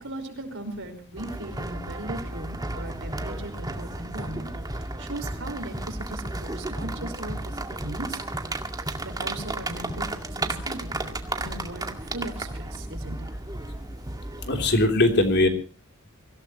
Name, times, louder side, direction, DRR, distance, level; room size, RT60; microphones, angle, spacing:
voice 1, 0.0-8.2 9.0-13.2, right 2 dB, 60° right, 6 dB, 5.2 m, -38 dB
sound 1, 1.2-14.8, right 2 dB, 20° right, 2.1 m, -33 dB
voice 2, 14.4-15.5, left 2 dB, 55° left, 4 dB, 3.4 m, -20 dB
24.5 x 17.0 x 3.1 m, 0.36 s
head